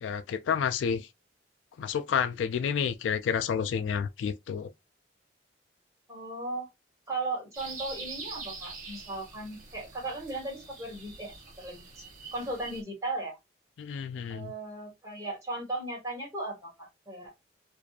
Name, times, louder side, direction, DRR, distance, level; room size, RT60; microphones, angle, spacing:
voice 1, 0.0-1.1 1.8-4.7 13.8-14.5, left 7 dB, 80° left, 0.3 m, -30 dB
voice 2, 6.1-6.7 7.1-12.0 12.3-13.4 14.3-17.3, right 2 dB, 15° right, 1.3 m, -37 dB
sound 1, 7.5-12.8, right 4 dB, 45° right, 0.8 m, -44 dB
2.6 x 2.3 x 2.3 m
head